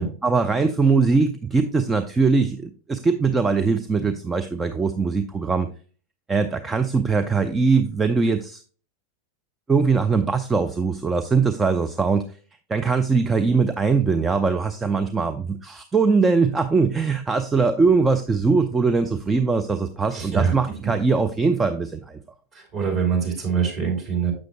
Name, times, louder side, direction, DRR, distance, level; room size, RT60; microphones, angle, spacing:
voice 1, 0.0-5.7 6.3-8.6 9.7-12.2 12.7-22.2, right 4 dB, 15° right, 7 dB, 0.5 m, -21 dB
voice 2, 20.1-20.5 22.5-24.3, right 6 dB, 35° right, -2 dB, 3.3 m, -24 dB
7.4 x 6.2 x 3.0 m, 0.39 s
figure-of-eight pair, 90°, 0 cm